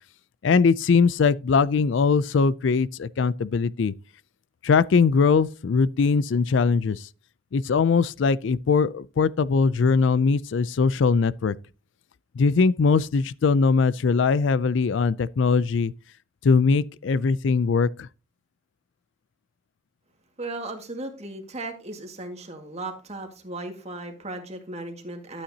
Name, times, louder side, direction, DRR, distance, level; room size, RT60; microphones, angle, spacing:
voice 1, 0.4-3.9 4.6-7.1 7.5-11.6 12.4-15.9 16.4-18.1, left 5 dB, 65° left, 0.4 m, -21 dB
voice 2, 20.4-25.4, right 2 dB, 35° right, 1.9 m, -36 dB
12.5 x 8.7 x 2.8 m
head